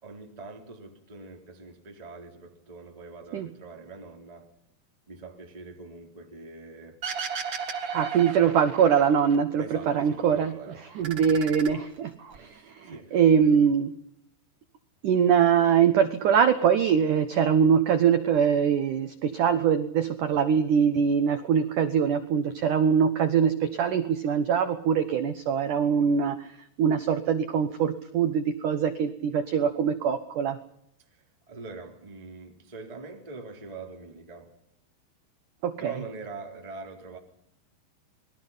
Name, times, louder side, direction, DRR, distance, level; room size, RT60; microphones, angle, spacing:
voice 1, 0.0-4.5 5.1-7.0 8.4-8.6 9.6-10.8 11.3-11.4 12.3-13.2 13.5-13.6 31.0-34.5 35.8-37.2, right 3 dB, 10° right, 1 dB, 3.1 m, -43 dB
sound 1, 7.0-9.4 9.7-10.5 10.8-12.4, right 6 dB, 65° right, 1.1 m, -35 dB
voice 2, 7.9-10.5 11.0-13.9 15.0-26.5 26.8-30.6 35.6-35.8, right 7 dB, 80° right, 9 dB, 1.8 m, -23 dB
29.0 x 22.0 x 5.7 m, 0.73 s
omnidirectional pair, 5.4 m